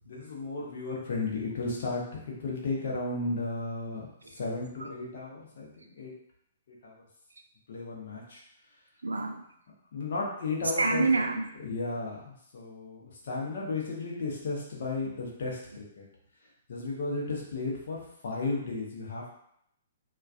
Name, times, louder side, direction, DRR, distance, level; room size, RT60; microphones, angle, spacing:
voice 1, 0.1-6.1 6.7-6.9 7.7-8.4 9.9-11.2 11.6-16.0 16.7-19.3, left 3 dB, 60° left, -3 dB, 0.7 m, -34 dB
voice 2, 9.0-9.4 10.8-11.5 16.8-16.9, right 3 dB, 80° right, 4 dB, 0.3 m, -28 dB
2.3 x 2.3 x 2.3 m, 0.73 s
figure-of-eight pair, 120°, 0 cm